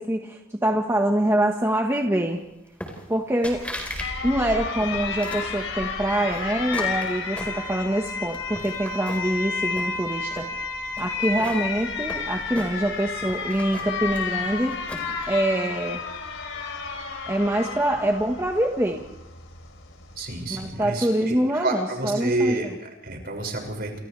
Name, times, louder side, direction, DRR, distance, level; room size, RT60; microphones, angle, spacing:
voice 1, 0.0-2.4 3.1-3.6 4.2-10.5 11.0-14.8 15.3-16.0 17.3-19.0 20.5-22.5, right 1 dB, 15° right, 1 dB, 1.5 m, -25 dB
sound 1, 2.8-3.2 3.4-4.1 4.4-5.5 6.1-8.0 8.3-9.4 9.7-10.5 11.0-13.0 13.3-15.2, left 1 dB, 5° left, 4.7 m, -38 dB
Alarm, 3.5-20.7, left 4 dB, 70° left, 3.9 m, -32 dB
voice 2, 20.2-24.0, right 2 dB, 50° right, 2 dB, 6.4 m, -29 dB
30.0 x 27.5 x 3.4 m, 0.87 s
head